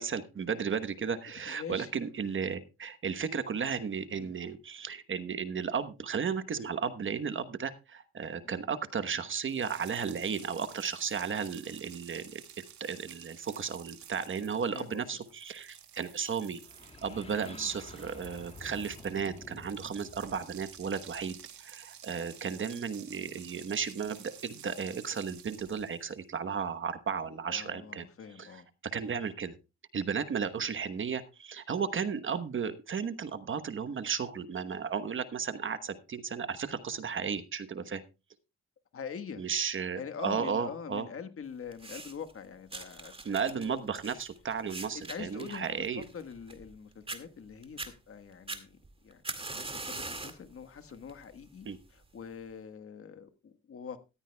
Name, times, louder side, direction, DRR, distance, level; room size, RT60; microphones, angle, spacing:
voice 1, 0.0-12.4 12.8-16.6 17.0-28.0 28.4-28.5 28.9-29.6 29.9-38.0 39.4-41.1 43.2-46.0 51.6-51.8, right 6 dB, 40° right, 10 dB, 1.1 m, -34 dB
voice 2, 1.5-1.9 4.1-4.3 8.4-8.5 14.7-15.1 17.3-17.7 27.5-28.7 38.9-39.4 39.9-43.9 44.9-54.0, left 6 dB, 45° left, 9 dB, 1.5 m, -44 dB
sound 1, 9.4-26.2, right 9 dB, 70° right, 2.1 m, -52 dB
sound 2, 16.6-21.5, left 3 dB, 20° left, 2.3 m, -51 dB
sound 3, 41.7-42.3 42.7-46.7 47.1-47.2 47.6-47.9 48.5-50.5 50.9-51.2 52.0-52.1, right 3 dB, 20° right, 2.1 m, -41 dB
14.5 x 13.5 x 2.3 m, 0.28 s
cardioid pair, 90°, 30 cm